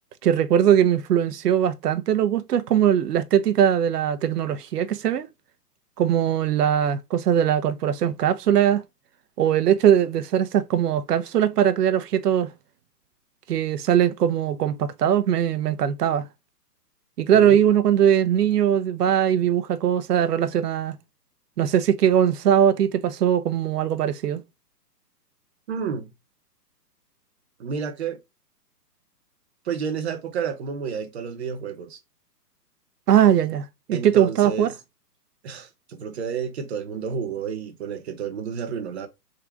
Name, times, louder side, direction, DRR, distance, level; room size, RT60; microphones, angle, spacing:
voice 1, 0.2-5.3 6.0-8.8 9.4-12.5 13.5-16.3 17.2-20.9 21.6-24.4 33.1-34.7, right 9 dB, 70° right, 0.7 m, -20 dB
voice 2, 25.7-26.1 27.6-28.2 29.7-32.0 33.9-34.7 35.4-39.1, right 6 dB, 40° right, 0.8 m, -30 dB
3.8 x 2.5 x 4.6 m
hypercardioid pair, 150°, 48 cm